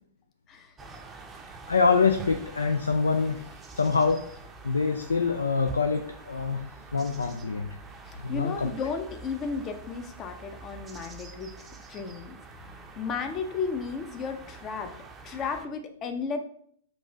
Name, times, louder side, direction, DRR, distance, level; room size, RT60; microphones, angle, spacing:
sound 1, 0.8-15.7, right 4 dB, 15° right, 0.6 m, -46 dB
voice 1, 1.7-3.4 3.7-4.2 4.6-6.7 6.9-7.7 8.2-8.7, left 4 dB, 80° left, 6 dB, 0.3 m, -25 dB
voice 2, 8.1-11.5 11.9-12.4 12.6-14.9 15.2-16.4, left 5 dB, 30° left, 7 dB, 0.6 m, -34 dB
4.1 x 2.5 x 4.5 m, 0.64 s
figure-of-eight pair, 105°, 0 cm